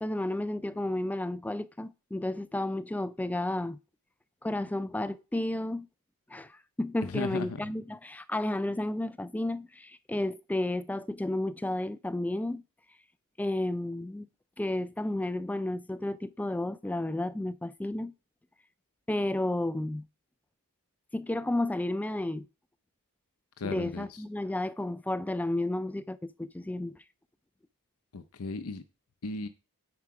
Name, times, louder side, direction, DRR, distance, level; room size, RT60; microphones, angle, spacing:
voice 1, 0.0-3.8 4.4-5.9 6.3-12.6 13.4-14.3 14.6-18.1 19.1-20.1 21.1-22.5 23.6-26.9, left 1 dB, 5° left, 0.3 m, -32 dB
voice 2, 7.1-7.5 23.6-24.1 28.1-28.8 29.2-29.5, left 3 dB, 70° left, 0.7 m, -35 dB
9.6 x 4.7 x 4.8 m
head